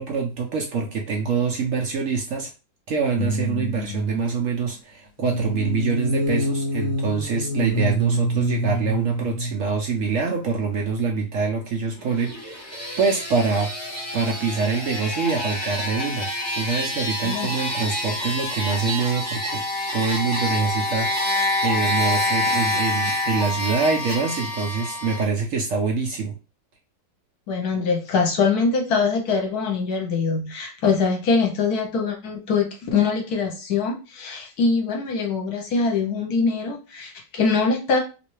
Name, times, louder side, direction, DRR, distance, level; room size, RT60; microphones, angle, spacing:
voice 1, 0.0-2.5 2.9-12.7 13.0-13.7 14.1-16.3 16.6-19.6 19.9-26.3, right 5 dB, 65° right, 1 dB, 0.8 m, -25 dB
sound 1, 3.2-4.2 5.2-9.8 10.2-10.3, equal, 40° left, 1.7 m, -26 dB
sound 2, 12.0-25.2, left 1 dB, 10° right, 1.6 m, -27 dB
voice 2, 27.5-38.0, left 4 dB, 70° left, 2 dB, 1.3 m, -23 dB
3.2 x 3.0 x 3.1 m, 0.32 s
omnidirectional pair, 1.8 m